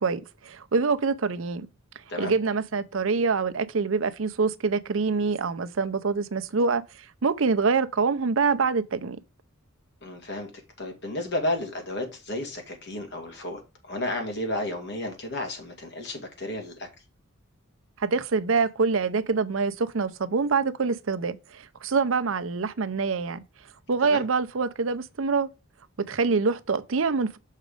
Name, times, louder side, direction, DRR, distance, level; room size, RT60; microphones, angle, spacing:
voice 1, 0.0-1.7 2.2-6.8 7.2-9.2 18.0-23.4 23.9-25.5 26.0-27.4, right 4 dB, 65° right, 0.6 m, -25 dB
voice 2, 10.0-10.5 10.8-13.6 13.9-16.9 24.0-24.2, left 1 dB, 55° left, 2.4 m, -32 dB
6.5 x 5.1 x 4.9 m
head